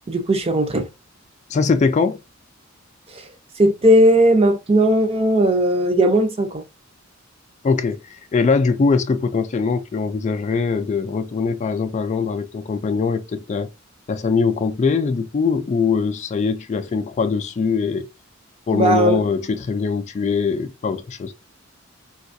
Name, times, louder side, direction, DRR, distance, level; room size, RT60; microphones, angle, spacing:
voice 1, 0.1-0.9 3.1-3.2 3.6-6.6 18.7-19.2, right 1 dB, 30° right, 0.6 m, -17 dB
voice 2, 1.5-2.2 7.6-13.7 14.1-18.1 18.7-21.3, left 4 dB, 35° left, 0.3 m, -22 dB
4.1 x 2.3 x 2.6 m
head